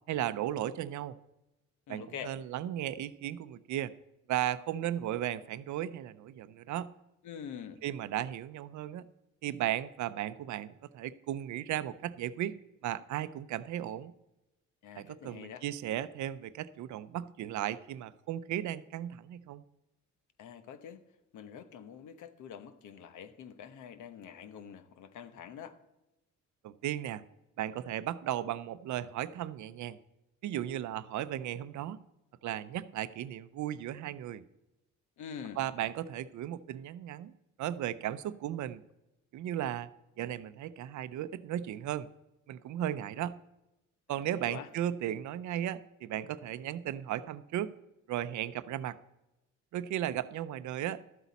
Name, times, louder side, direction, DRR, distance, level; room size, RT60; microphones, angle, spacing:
voice 1, 0.1-1.2 1.9-3.9 4.3-6.9 7.8-9.1 9.4-12.6 12.8-14.1 15.0-19.6 26.6-27.2 27.6-30.0 30.4-32.0 32.4-34.4 35.6-37.3 37.6-38.8 39.3-39.9 40.2-42.1 42.5-43.4 44.1-47.7 48.1-49.0 49.7-51.0, right 12 dB, 75° right, 15 dB, 0.6 m, -35 dB
voice 2, 1.9-2.3 7.2-7.8 14.8-15.6 20.4-21.0 21.3-25.8 35.2-35.6 44.1-44.7, left 8 dB, 80° left, 10 dB, 1.0 m, -45 dB
12.5 x 8.2 x 4.1 m, 0.94 s
cardioid pair, 90°, 30 cm